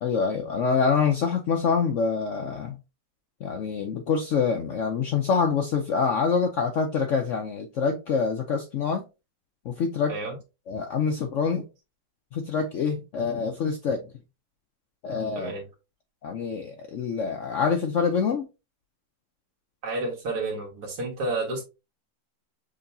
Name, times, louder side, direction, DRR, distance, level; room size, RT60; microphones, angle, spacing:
voice 1, 0.0-2.8 3.4-9.0 9.6-10.1 10.7-11.7 12.3-14.0 15.0-15.5 16.2-18.5, left 5 dB, 75° left, 0.7 m, -26 dB
voice 2, 15.3-15.7 19.8-21.6, right 2 dB, 60° right, 1.9 m, -30 dB
6.7 x 2.7 x 2.6 m
omnidirectional pair, 2.0 m